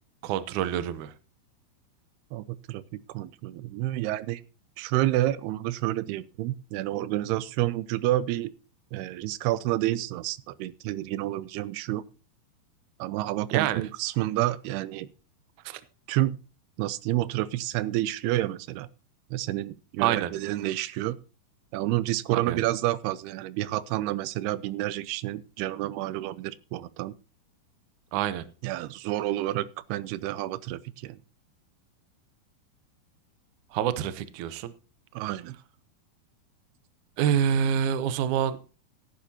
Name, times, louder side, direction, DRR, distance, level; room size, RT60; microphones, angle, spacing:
voice 1, 0.2-1.1 13.5-13.8 15.6-15.8 20.0-20.3 22.3-22.6 28.1-28.5 33.7-34.7 37.2-38.6, right 9 dB, 70° right, 13 dB, 1.9 m, -26 dB
voice 2, 2.3-2.8 3.1-4.4 4.8-8.5 8.9-12.0 13.0-15.1 16.1-16.4 16.8-18.9 19.3-21.2 21.7-27.1 28.6-31.2 35.1-35.6, right 15 dB, 90° right, 17 dB, 2.7 m, -29 dB
16.5 x 10.5 x 2.9 m, 0.34 s
omnidirectional pair, 4.5 m